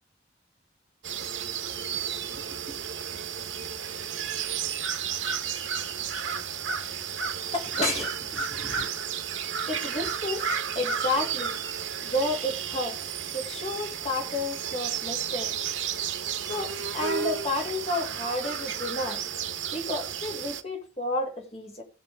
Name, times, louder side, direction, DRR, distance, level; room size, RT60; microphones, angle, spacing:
sound 1, 1.0-20.6, right 7 dB, 90° right, 1.0 m, -32 dB
voice 1, 7.5-8.9 9.7-11.5 12.0-13.0 13.3-15.5 16.4-19.2 19.7-21.8, left 2 dB, 35° left, 2.1 m, -31 dB
17.0 x 5.9 x 3.5 m
head